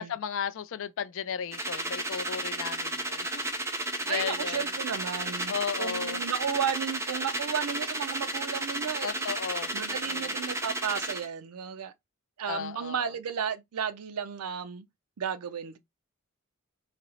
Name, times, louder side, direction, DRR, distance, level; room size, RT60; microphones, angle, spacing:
voice 1, 0.0-3.3 3.8-4.7 5.5-6.2 9.0-10.4 12.5-13.1, left 7 dB, 60° left, 0.4 m, -35 dB
sound 1, 1.5-11.3, right 1 dB, 10° right, 0.5 m, -33 dB
voice 2, 4.1-9.3 9.7-11.9 12.4-14.8 15.2-15.8, right 7 dB, 80° right, 0.5 m, -33 dB
4.2 x 2.0 x 3.8 m
head